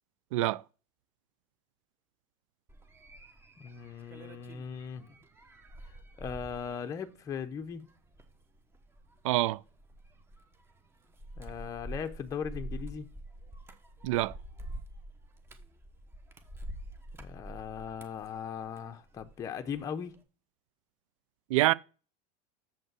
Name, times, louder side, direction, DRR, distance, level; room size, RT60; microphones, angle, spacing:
voice 1, 0.3-0.6 9.2-9.6 14.0-14.3 21.5-21.7, right 17 dB, 90° right, 0.4 m, -26 dB
sound 1, 2.7-19.4 19.7-20.2, right 1 dB, 15° right, 1.1 m, -46 dB
voice 2, 3.6-5.2 5.9-7.9 11.4-13.1 17.1-20.1, left 7 dB, 20° left, 0.7 m, -39 dB
7.3 x 5.4 x 6.1 m
supercardioid pair, 155°, 16 cm